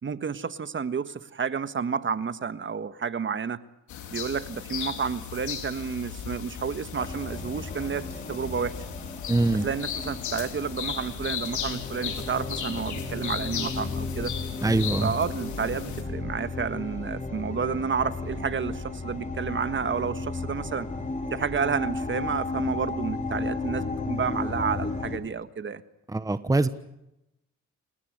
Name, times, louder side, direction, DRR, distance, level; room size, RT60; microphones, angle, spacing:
voice 1, 0.0-3.6 4.1-8.8 9.6-14.3 15.0-20.9 21.3-25.8, right 6 dB, 40° right, 12 dB, 1.6 m, -30 dB
sound 1, 3.9-16.0, left 8 dB, 75° left, 3.9 m, -36 dB
sound 2, 7.0-25.2, left 3 dB, 25° left, 4.1 m, -34 dB
voice 2, 9.3-9.6 14.6-15.1 26.1-26.7, right 2 dB, 10° right, 12 dB, 1.2 m, -23 dB
29.0 x 17.5 x 8.0 m, 0.86 s
cardioid pair, 90°, 30 cm